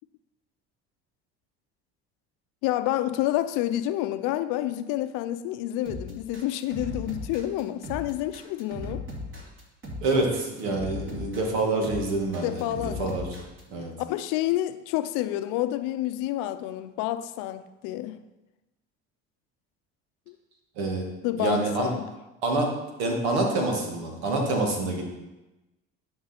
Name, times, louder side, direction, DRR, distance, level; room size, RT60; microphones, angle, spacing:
voice 1, 2.6-9.0 12.4-13.2 14.0-18.2 20.3-20.4 21.2-22.1, left 14 dB, 70° left, 0.7 m, -29 dB
sound 1, 5.8-13.6, left 2 dB, 35° right, 3.1 m, -37 dB
voice 2, 10.0-12.6 13.0-13.3 13.7-13.9 20.8-21.1 21.4-21.9 22.4-22.7 23.0-25.0, right 2 dB, 75° right, 2.2 m, -26 dB
11.0 x 5.4 x 4.4 m
hypercardioid pair, 70°, 33 cm